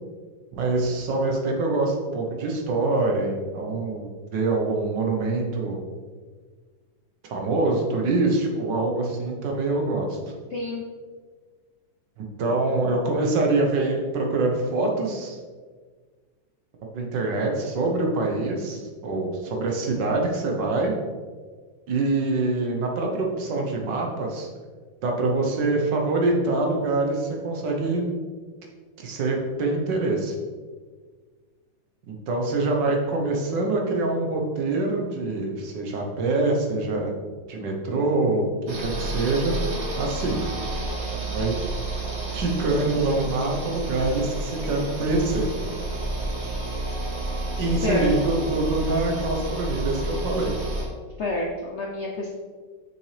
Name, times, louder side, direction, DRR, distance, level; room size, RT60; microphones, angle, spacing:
voice 1, 0.5-5.8 7.2-10.2 12.2-15.4 16.9-20.9 21.9-24.5 25.0-28.0 29.0-30.3 32.1-37.1 37.5-38.5 38.8-39.6 40.0-40.4 41.3-41.5 42.3-45.5 47.6-50.5, right 2 dB, 70° right, 1 dB, 1.7 m, -25 dB
voice 2, 10.5-10.8 47.8-48.1 51.2-52.3, left 2 dB, 65° left, -1 dB, 0.7 m, -28 dB
sound 1, 38.7-50.8, right 2 dB, 40° right, 1.4 m, -30 dB
6.5 x 6.0 x 3.3 m, 1.5 s
omnidirectional pair, 2.0 m